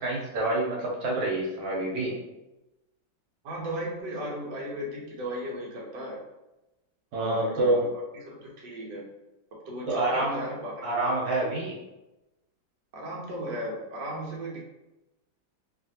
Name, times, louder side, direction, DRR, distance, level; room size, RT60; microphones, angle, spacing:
voice 1, 0.0-2.1 7.1-7.8 9.9-10.4 10.8-11.8, right 2 dB, 85° right, -3 dB, 1.5 m, -27 dB
voice 2, 3.4-6.2 7.1-7.9 8.2-9.0 9.7-10.7 11.1-11.2 12.9-14.6, equal, 65° right, -3 dB, 1.3 m, -35 dB
3.2 x 2.5 x 2.7 m, 0.98 s
omnidirectional pair, 2.1 m